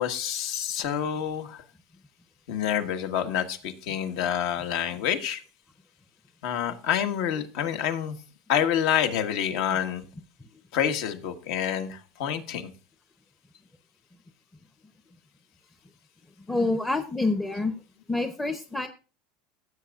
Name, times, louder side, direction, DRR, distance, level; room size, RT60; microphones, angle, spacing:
voice 1, 0.0-1.6 2.5-5.4 6.4-8.2 8.5-10.0 10.7-12.7, left 9 dB, 70° left, 7 dB, 1.4 m, -27 dB
voice 2, 16.5-17.8 18.1-18.9, left 2 dB, 10° left, 6 dB, 0.6 m, -27 dB
16.0 x 8.1 x 2.4 m, 0.34 s
supercardioid pair, 140°, 3 cm